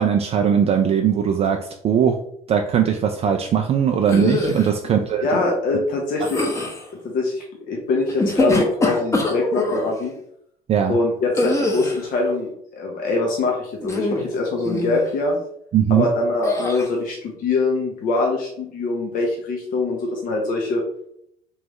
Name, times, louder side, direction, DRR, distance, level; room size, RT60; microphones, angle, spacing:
voice 1, 0.0-1.6 1.8-2.2 2.5-5.2 10.7-11.0 15.7-16.1, right 8 dB, 30° right, 3 dB, 0.4 m, -19 dB
sound 1, 4.1-4.7 6.2-6.8 8.1-9.8 11.3-12.1 13.8-14.3 14.6-15.0 16.4-16.9, left 2 dB, 15° left, 0.9 m, -23 dB
voice 2, 4.8-6.4 7.0-10.1 10.9-15.4 15.9-20.8, left 3 dB, 45° left, 0 dB, 0.8 m, -23 dB
3.5 x 3.1 x 3.0 m, 0.69 s
figure-of-eight pair, 60°, 19 cm